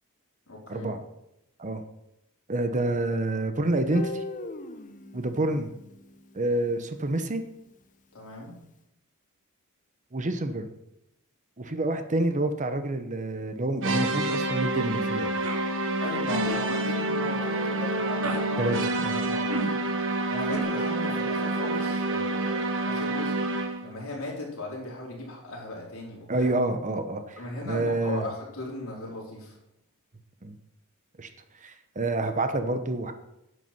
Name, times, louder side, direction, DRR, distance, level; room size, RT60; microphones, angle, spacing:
voice 1, 0.5-0.9 8.1-8.5 16.0-18.8 19.1-19.7 20.3-23.4 23.8-26.5 27.4-29.5, left 2 dB, 65° left, -3 dB, 4.2 m, -37 dB
voice 2, 2.5-4.2 5.1-5.7 6.3-7.4 10.1-10.7 11.6-15.3 18.6-18.8 19.0-19.4 26.3-28.3 30.4-30.6 31.2-31.3 31.6-33.1, right 2 dB, 35° right, 9 dB, 0.9 m, -28 dB
Guitar, 3.9-6.9, left 2 dB, 35° left, 0.8 m, -39 dB
sound 1, 13.8-23.9, right 2 dB, 60° right, 1.2 m, -28 dB
sound 2, 15.4-15.6 16.4-16.7 18.2-18.4 19.5-19.7 20.5-20.6, right 2 dB, 80° right, 1.7 m, -32 dB
11.0 x 8.1 x 5.9 m, 0.86 s
head